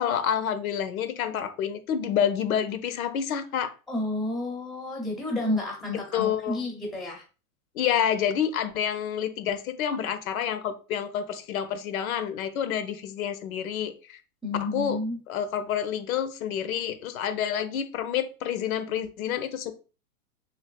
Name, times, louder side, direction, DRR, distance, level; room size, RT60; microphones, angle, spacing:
voice 1, 0.0-3.7 6.1-6.6 7.7-14.2 14.6-15.0 15.3-19.7, left 9 dB, 65° left, 0.7 m, -28 dB
voice 2, 3.9-7.2 14.4-15.2, left 2 dB, ahead, 0.5 m, -30 dB
3.3 x 2.8 x 2.4 m
hypercardioid pair, 125°, 45 cm